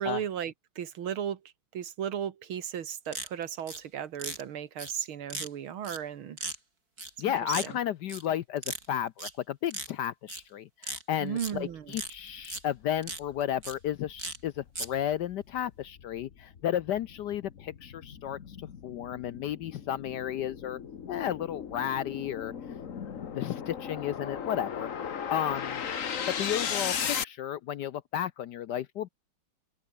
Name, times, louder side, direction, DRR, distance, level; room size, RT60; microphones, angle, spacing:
voice 1, 0.0-1.4 1.7-6.4 7.3-7.8 11.2-12.0, right 9 dB, 75° right, 2.3 m, -35 dB
sound 1, 3.0-3.8 4.2-4.4 4.8-4.9 5.3-5.5 5.8-6.0 6.4-6.5 7.0-7.2 7.5-7.7 8.1-8.3 8.6-8.8 9.2-9.3 9.7-9.9 10.3-10.4 10.8-11.5 11.9-12.1 12.4-12.6 13.0-13.2 13.6-13.7 14.2-14.4 14.7-14.9, right 3 dB, 45° right, 5.3 m, -36 dB
voice 2, 7.2-20.8 21.1-22.5 23.2-24.9 25.3-25.8 26.4-29.1, left 10 dB, 65° left, 1.1 m, -33 dB
sound 2, 12.5-12.6 13.1-27.2, left 7 dB, 45° left, 1.4 m, -37 dB
open air
omnidirectional pair, 2.3 m